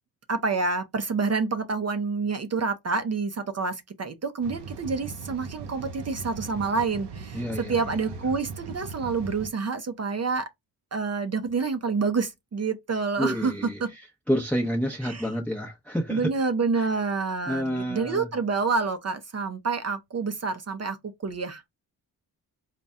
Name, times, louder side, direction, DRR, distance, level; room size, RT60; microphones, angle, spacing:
voice 1, 0.3-10.5 10.9-13.5 13.8-13.9 15.0-15.3 16.1-21.6, right 4 dB, 40° right, 0.6 m, -28 dB
sound 1, 4.4-9.5, right 5 dB, 80° right, 0.6 m, -39 dB
voice 2, 7.3-7.7 13.2-14.0 14.3-16.3 16.8-16.9 17.5-18.3, equal, 5° left, 0.8 m, -29 dB
4.0 x 2.3 x 3.5 m
cardioid pair, 75°, 41 cm